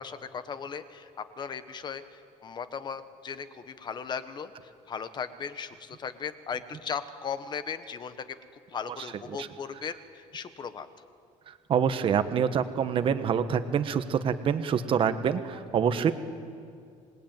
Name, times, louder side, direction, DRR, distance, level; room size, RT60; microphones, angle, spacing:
voice 1, 0.0-8.1 8.7-10.9, left 6 dB, 30° left, 11 dB, 1.3 m, -37 dB
voice 2, 11.5-16.1, right 7 dB, 40° right, 10 dB, 1.3 m, -26 dB
27.0 x 20.5 x 9.2 m, 2.3 s
cardioid pair, 150°, 14 cm